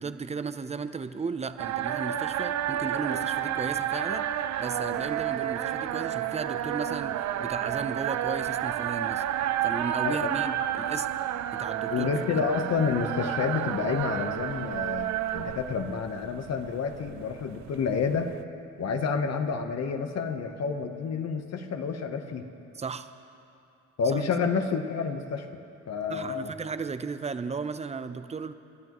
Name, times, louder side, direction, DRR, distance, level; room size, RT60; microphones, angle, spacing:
voice 1, 0.0-4.3 4.6-9.2 9.6-11.1 11.5-12.1 22.8-23.1 24.1-24.2 26.1-28.5, right 5 dB, 20° right, 11 dB, 0.6 m, -35 dB
sound 1, 1.6-18.4, right 11 dB, 70° right, 0.6 m, -31 dB
voice 2, 11.9-18.3 18.8-22.5 24.0-25.5 25.9-26.5, left 5 dB, 60° left, 6 dB, 1.1 m, -29 dB
28.0 x 12.0 x 3.1 m, 2.7 s
cardioid pair, 90°, 30 cm